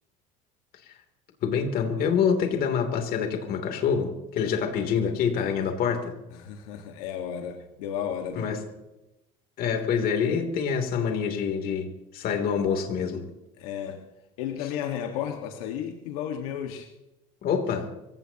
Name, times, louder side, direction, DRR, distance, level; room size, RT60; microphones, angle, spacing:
voice 1, 1.4-6.1 8.3-8.6 9.6-13.2 17.4-17.9, left 6 dB, 55° left, 4 dB, 3.2 m, -26 dB
voice 2, 6.3-8.5 13.6-14.0 14.4-16.9, left 9 dB, 85° left, 4 dB, 1.7 m, -33 dB
25.0 x 16.5 x 3.0 m, 0.96 s
supercardioid pair, 105°, 18 cm